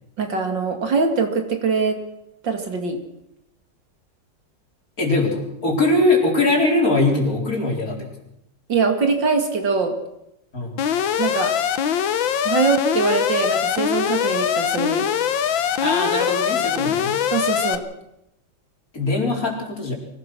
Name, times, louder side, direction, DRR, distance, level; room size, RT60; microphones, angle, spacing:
voice 1, 0.2-2.0 2.4-3.0 8.7-10.0 11.2-11.5 12.4-15.1 17.3-17.8, right 4 dB, 70° right, 5 dB, 3.1 m, -22 dB
voice 2, 5.0-8.1 10.5-10.9 15.8-17.2 18.9-19.9, left 2 dB, 45° left, 0 dB, 4.8 m, -21 dB
Alarm, 10.8-17.8, left 8 dB, 85° left, 1.8 m, -22 dB
24.0 x 17.5 x 6.2 m, 0.83 s
omnidirectional pair, 2.1 m